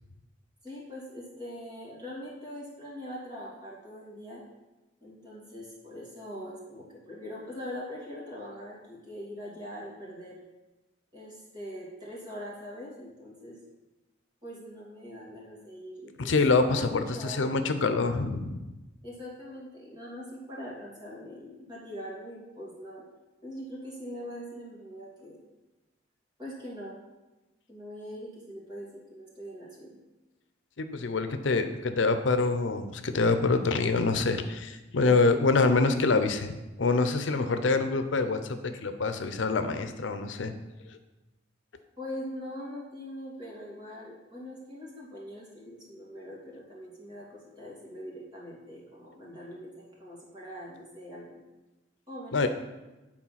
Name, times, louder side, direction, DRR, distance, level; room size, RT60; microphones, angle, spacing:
voice 1, 0.6-4.4 5.0-10.4 11.1-13.6 14.4-17.5 19.0-23.0 23.4-25.4 26.4-27.0 27.7-30.0 42.0-51.4 52.1-52.5, equal, 25° right, -5 dB, 2.6 m, -42 dB
voice 2, 16.2-18.6 30.8-36.5 36.8-40.5 52.3-52.5, left 3 dB, 80° left, 8 dB, 0.6 m, -26 dB
8.6 x 4.3 x 5.7 m, 1.1 s
head